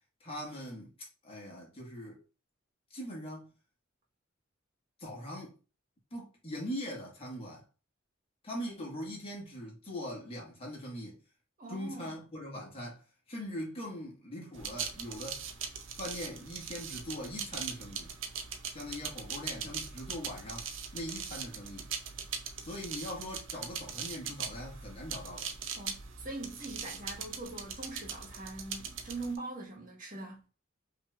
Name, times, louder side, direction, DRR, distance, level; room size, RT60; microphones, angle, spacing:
voice 1, 0.2-0.9 1.2-2.2 2.9-3.5 5.0-5.6 6.1-7.6 8.4-11.2 11.7-15.5 16.0-18.1 18.7-21.9 22.6-25.5, equal, 30° left, 1.6 m, -41 dB
voice 2, 11.6-12.2 24.3-24.4 25.8-30.4, right 2 dB, 40° right, 1.4 m, -42 dB
sound 1, 14.6-29.4, right 7 dB, 65° right, 0.7 m, -41 dB
5.4 x 3.0 x 2.4 m
head